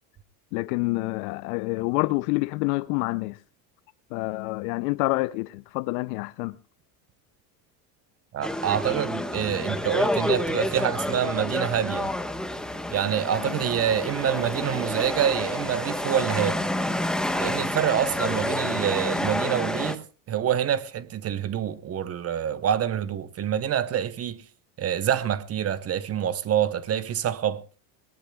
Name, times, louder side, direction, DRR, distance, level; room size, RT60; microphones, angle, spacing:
voice 1, 0.5-3.4 4.1-6.6 13.4-13.6, left 23 dB, 75° left, 0.6 m, -27 dB
voice 2, 8.3-12.1 12.9-16.6 17.4-20.0 20.3-24.4 24.8-27.6, right 9 dB, 35° right, 0.9 m, -26 dB
sound 1, 8.4-19.9, left 1 dB, ahead, 1.1 m, -29 dB
21.0 x 18.5 x 2.3 m
supercardioid pair, 115°, 45 cm